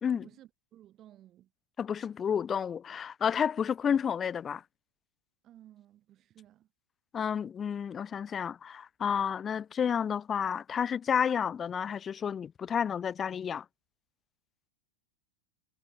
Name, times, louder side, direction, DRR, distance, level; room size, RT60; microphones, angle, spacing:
voice 1, 0.0-1.5 5.4-6.7, right 12 dB, 30° right, 7.2 m, -56 dB
voice 2, 1.8-4.6 7.1-13.6, left 7 dB, 20° left, 0.5 m, -31 dB
figure-of-eight pair, 90°, 0 cm